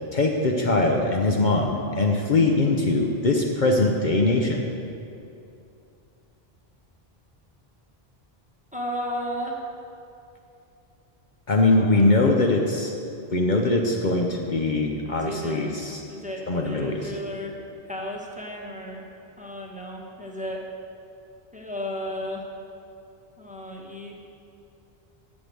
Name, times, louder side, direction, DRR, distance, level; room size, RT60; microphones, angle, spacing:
voice 1, 0.1-4.7 11.5-12.9 13.3-16.0 16.5-17.1, left 2 dB, 50° left, 1 dB, 0.9 m, -22 dB
voice 2, 8.7-9.6 11.7-12.4 14.9-15.7 16.0-17.5 17.8-19.0 19.4-20.6 21.5-22.4 23.4-24.1, equal, 10° right, -2 dB, 1.1 m, -34 dB
8.4 x 6.3 x 7.7 m, 2.7 s
omnidirectional pair, 1.0 m